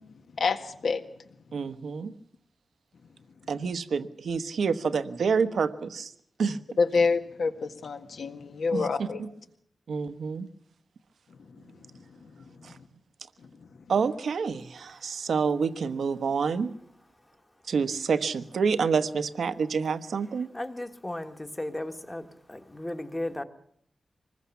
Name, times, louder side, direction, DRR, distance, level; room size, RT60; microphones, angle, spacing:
voice 1, 0.4-1.0 6.8-9.2, left 4 dB, 70° left, 6 dB, 1.7 m, -27 dB
voice 2, 1.5-2.1 3.5-6.1 6.4-6.6 8.7-9.3 9.9-10.5 12.6-12.8 13.9-16.7 17.7-20.5, right 5 dB, 80° right, 11 dB, 1.2 m, -28 dB
voice 3, 20.5-23.4, left 1 dB, 15° left, 7 dB, 1.3 m, -35 dB
25.0 x 20.5 x 7.1 m, 0.68 s
wide cardioid pair, 165°, 0 cm